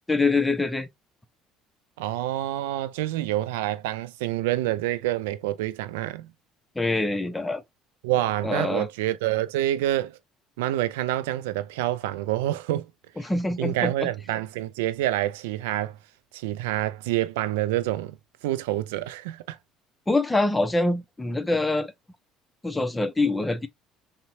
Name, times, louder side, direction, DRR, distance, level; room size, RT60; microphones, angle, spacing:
voice 1, 0.1-0.9 6.8-7.6 8.4-8.9 13.2-14.1 20.1-21.9 22.6-23.7, left 2 dB, 10° left, 0.7 m, -25 dB
voice 2, 2.0-6.3 8.0-10.2 10.6-12.9 13.6-16.0 16.3-18.2 18.4-19.6, right 14 dB, 70° right, 0.3 m, -27 dB
5.5 x 2.2 x 2.6 m
figure-of-eight pair, 60°, 0 cm